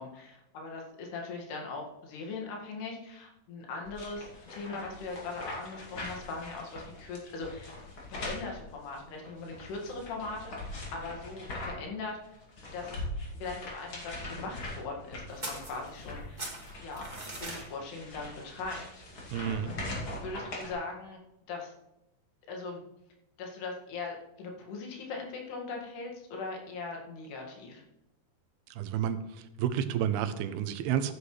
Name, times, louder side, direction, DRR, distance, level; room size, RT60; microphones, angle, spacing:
voice 1, 0.0-7.7 8.1-12.2 12.7-13.0 13.3-16.4 16.8-17.1 17.4-19.0 19.6-19.8 20.2-21.2 21.5-21.7 22.5-22.8 23.4-27.8, left 3 dB, 85° left, 0 dB, 4.0 m, -40 dB
sound 1, 3.8-11.9 12.2-20.7, left 1 dB, 35° left, 2.7 m, -42 dB
sound 2, 15.4-16.1 16.4-17.6, right 2 dB, 20° right, 1.1 m, -40 dB
voice 2, 19.3-19.7 28.8-29.2 29.6-31.1, right 9 dB, 85° right, 11 dB, 2.6 m, -30 dB
14.5 x 9.6 x 3.2 m, 0.89 s
omnidirectional pair, 4.6 m